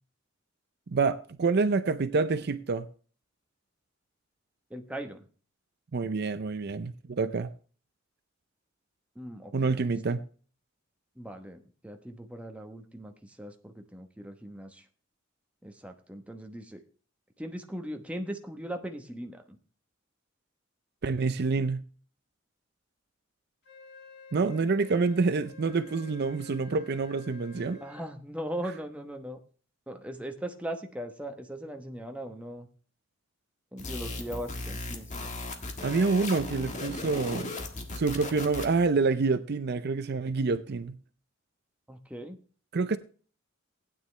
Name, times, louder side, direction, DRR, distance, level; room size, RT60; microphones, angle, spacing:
voice 1, 0.9-2.9 5.9-7.5 9.5-10.2 21.0-21.8 24.3-27.8 35.8-37.6 37.9-41.0 42.7-43.0, right 4 dB, 50° right, 0.5 m, -27 dB
voice 2, 4.7-5.2 9.1-9.9 11.2-14.8 15.6-16.8 17.4-19.6 27.8-29.4 29.9-32.7 33.7-35.3 41.9-42.4, right 1 dB, 5° right, 1.0 m, -39 dB
Wind instrument woodwind instrument, 23.6-28.1, left 5 dB, 60° left, 2.6 m, -50 dB
sound 1, 33.8-38.9, left 2 dB, 35° left, 1.6 m, -37 dB
15.5 x 9.4 x 3.3 m
head